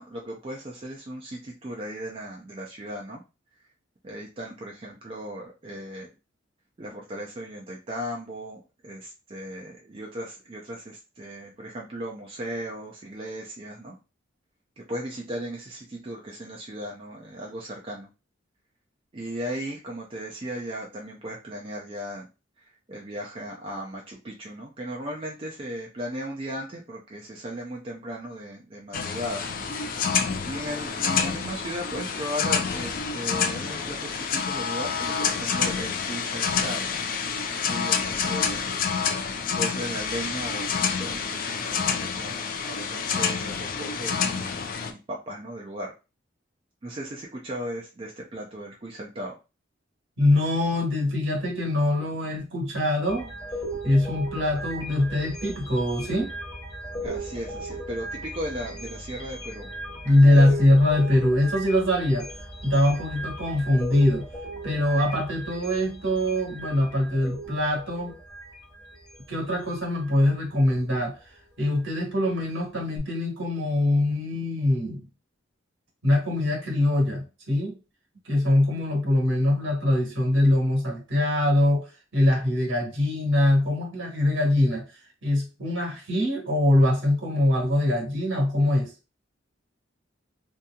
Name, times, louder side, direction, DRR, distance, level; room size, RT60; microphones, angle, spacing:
voice 1, 0.0-3.2 4.0-6.1 6.8-14.0 14.9-18.1 19.1-22.3 22.9-29.5 30.4-38.7 39.5-45.9 46.8-49.4 57.0-59.7 60.1-60.6, equal, 30° right, -1 dB, 0.4 m, -36 dB
sound 1, 28.9-44.9, left 6 dB, 45° left, 0.4 m, -28 dB
voice 2, 50.2-53.3 53.8-56.3 60.0-62.3 62.6-64.3 64.6-68.1 69.3-71.2 71.6-75.1 76.0-77.8 78.2-81.9 82.1-84.8 85.2-88.9, left 1 dB, 70° right, -1 dB, 1.3 m, -23 dB
sound 2, 53.0-70.2 70.7-70.9 73.0-73.1, right 1 dB, 20° left, 1.0 m, -38 dB
2.8 x 2.6 x 2.3 m, 0.30 s
head